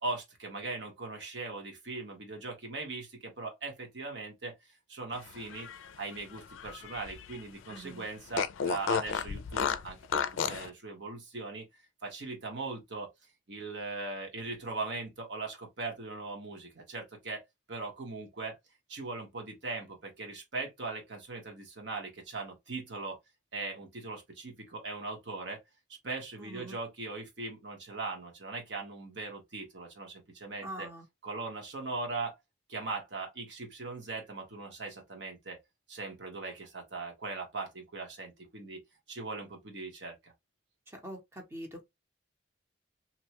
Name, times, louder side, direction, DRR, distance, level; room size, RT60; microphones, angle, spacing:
voice 1, 0.0-4.6 4.9-5.7 6.0-11.7 12.0-13.1 13.5-17.4 17.7-18.6 18.9-23.2 23.5-25.6 26.0-30.9 31.2-32.3 32.7-35.6 35.9-38.8 39.1-40.3, right 3 dB, 65° right, 1.1 m, -39 dB
Fart, 5.3-7.4 7.7-7.8 8.3-10.7, left 6 dB, 85° left, 0.3 m, -33 dB
voice 2, 7.7-8.0 26.4-26.8 30.6-31.0 40.9-41.8, right 1 dB, 15° right, 0.7 m, -44 dB
2.8 x 2.2 x 2.8 m
head